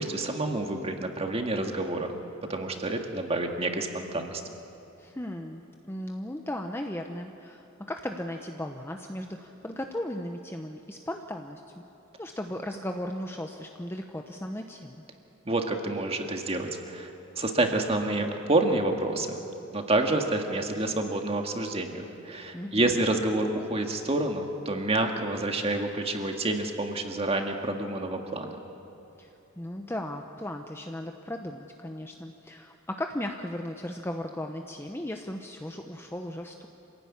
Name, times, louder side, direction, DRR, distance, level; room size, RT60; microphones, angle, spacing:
voice 1, 0.0-2.1 2.5-4.4 15.5-17.1 17.4-19.4 19.7-28.6, right 2 dB, 30° right, 4 dB, 1.9 m, -28 dB
voice 2, 5.0-11.8 12.2-15.0 22.5-22.8 29.2-36.7, left 1 dB, 10° left, 4 dB, 0.8 m, -36 dB
27.0 x 16.0 x 9.8 m, 2.9 s
head